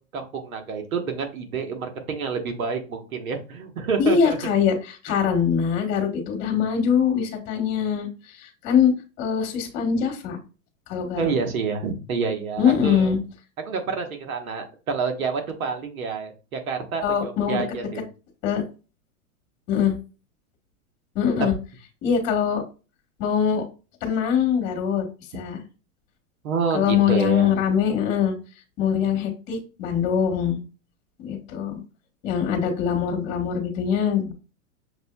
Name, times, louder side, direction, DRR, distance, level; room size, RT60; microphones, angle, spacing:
voice 1, 0.1-4.4 5.1-5.2 11.2-13.1 13.6-18.0 26.4-27.5, right 5 dB, 80° right, 4 dB, 1.3 m, -28 dB
voice 2, 4.0-8.9 9.2-10.4 10.9-11.3 12.6-13.2 17.0-17.6 18.4-18.6 19.7-20.0 21.1-21.5 22.0-22.6 23.2-23.6 24.0-25.0 25.3-25.6 26.7-28.4 28.8-30.6 31.2-31.8 32.2-34.3, left 7 dB, 45° left, 4 dB, 1.4 m, -23 dB
6.4 x 2.7 x 2.2 m, 0.32 s
hypercardioid pair, 120°, 41 cm